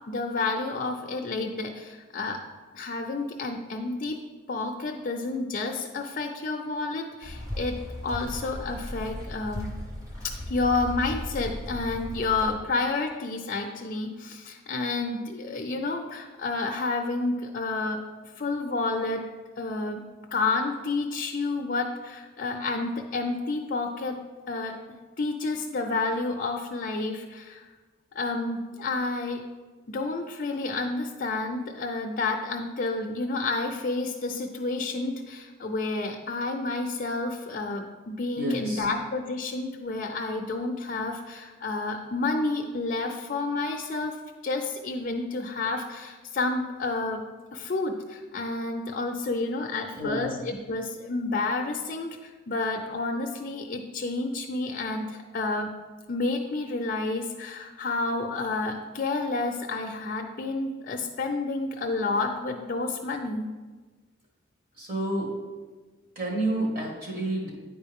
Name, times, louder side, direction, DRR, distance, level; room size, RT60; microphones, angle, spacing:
voice 1, 0.1-2.4 2.7-4.2 4.5-7.8 8.0-9.7 10.2-18.0 18.4-19.2 19.6-20.0 20.3-24.2 24.5-24.8 25.2-27.6 28.1-29.4 29.9-44.2 44.4-47.2 47.5-55.7 56.1-63.5, left 3 dB, 45° left, 2 dB, 0.5 m, -30 dB
sound 1, 7.2-12.5, left 1 dB, 15° right, 1.0 m, -36 dB
voice 2, 38.4-38.9 49.9-50.4 64.8-65.3 66.2-67.5, right 1 dB, 45° right, -3 dB, 1.9 m, -30 dB
9.6 x 4.5 x 3.6 m, 1.3 s
head